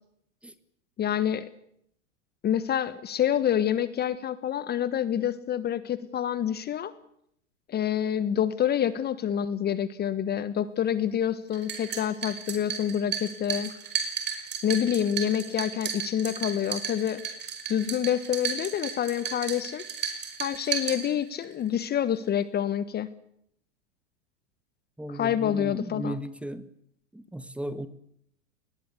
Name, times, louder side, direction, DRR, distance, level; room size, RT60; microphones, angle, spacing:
voice 1, 1.0-1.5 2.4-6.9 7.7-13.7 14.6-17.2 17.7-19.8 20.4-23.1 25.1-26.2, left 9 dB, 25° left, 15 dB, 1.4 m, -27 dB
sound 1, 11.5-21.5, right 7 dB, 30° right, 5.7 m, -34 dB
voice 2, 25.0-26.7 27.1-27.9, right 1 dB, 5° right, 13 dB, 1.7 m, -36 dB
23.0 x 20.5 x 8.3 m, 0.71 s
hypercardioid pair, 115°, 36 cm